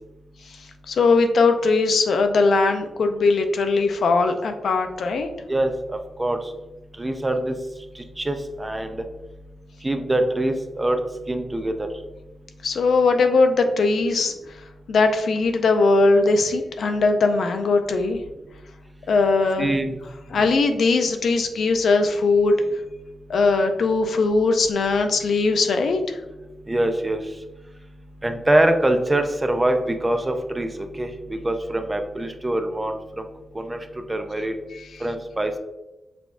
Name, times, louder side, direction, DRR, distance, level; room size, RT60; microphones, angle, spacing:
voice 1, 0.9-5.3 12.6-14.3 14.9-18.2 19.1-19.7 20.3-22.6 23.3-26.2, left 3 dB, 70° left, 6 dB, 0.5 m, -20 dB
voice 2, 5.5-6.4 7.0-7.6 8.2-9.0 9.8-11.0 11.3-11.9 19.6-19.9 20.4-20.6 26.7-27.2 28.2-33.2 33.5-33.8 34.1-34.5 35.0-35.6, right 1 dB, 15° right, 6 dB, 0.4 m, -24 dB
5.9 x 3.5 x 2.4 m, 1.0 s
wide cardioid pair, 110°, 0 cm